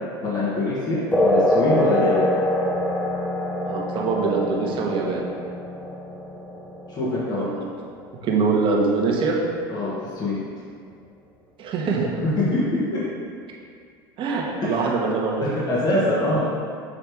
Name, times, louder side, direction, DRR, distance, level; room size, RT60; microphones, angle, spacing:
voice 1, 0.2-2.3 6.9-7.5 9.7-10.3 12.4-12.6 12.9-13.0 14.6-14.8 15.4-16.7, left 1 dB, 35° left, -8 dB, 1.6 m, -24 dB
sound 1, 1.1-8.1, left 1 dB, 10° left, 0.7 m, -24 dB
voice 2, 3.7-5.3 7.4-7.7 8.2-9.4 11.6-12.1 14.2-15.6, right 4 dB, 45° right, -2 dB, 1.2 m, -23 dB
7.1 x 3.2 x 4.7 m, 2.1 s
supercardioid pair, 100°, 12 cm